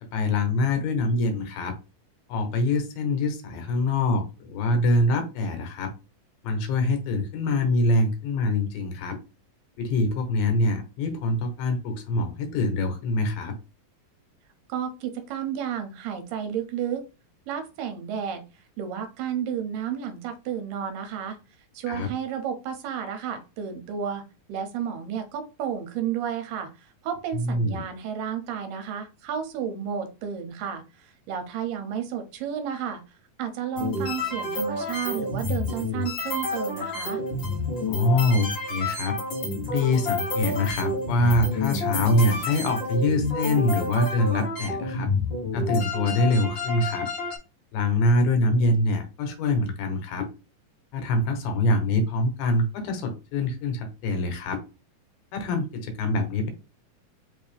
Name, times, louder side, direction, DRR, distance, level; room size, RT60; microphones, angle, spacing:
voice 1, 0.0-1.7 2.3-5.9 6.4-9.2 9.8-13.6 21.9-22.1 27.3-27.8 37.9-39.2 39.7-45.1 45.5-47.1 47.7-50.3 50.9-54.6 55.3-56.5, left 2 dB, 90° left, 5 dB, 2.8 m, -24 dB
voice 2, 14.7-17.0 17.5-18.4 18.8-21.4 21.7-24.2 24.5-37.2, right 8 dB, 80° right, 7 dB, 2.4 m, -32 dB
sound 1, 33.7-47.4, left 2 dB, 45° left, 1.8 m, -29 dB
5.6 x 2.7 x 3.4 m, 0.29 s
omnidirectional pair, 4.0 m